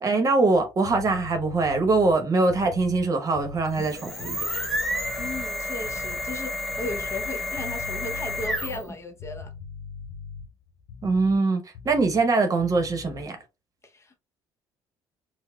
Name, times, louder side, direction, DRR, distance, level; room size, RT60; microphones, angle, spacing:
voice 1, 0.0-4.4 11.0-13.4, right 3 dB, 40° right, 0.9 m, -23 dB
sound 1, 0.5-5.5 5.8-6.4 6.7-11.4 11.7-12.3 12.6-13.3, left 5 dB, 70° left, 0.7 m, -42 dB
sound 2, 3.7-9.0, left 1 dB, ahead, 0.8 m, -30 dB
voice 2, 5.0-9.5 13.8-14.2, left 2 dB, 30° left, 0.7 m, -36 dB
4.5 x 2.1 x 2.2 m
supercardioid pair, 80°, 9 cm